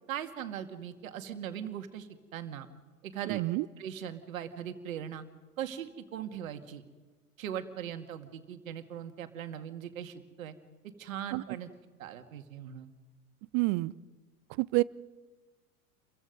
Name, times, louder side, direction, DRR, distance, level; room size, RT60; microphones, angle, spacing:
voice 1, 0.1-2.7 3.0-3.4 3.8-5.2 5.6-6.8 7.4-10.5 11.0-11.7 12.0-12.9, right 9 dB, 65° right, 8 dB, 2.3 m, -40 dB
voice 2, 3.3-3.6 11.3-11.4 13.5-13.9 14.6-14.8, right 23 dB, 40° right, 21 dB, 0.7 m, -28 dB
29.5 x 23.0 x 5.4 m, 1.3 s
figure-of-eight pair, 85°, 44 cm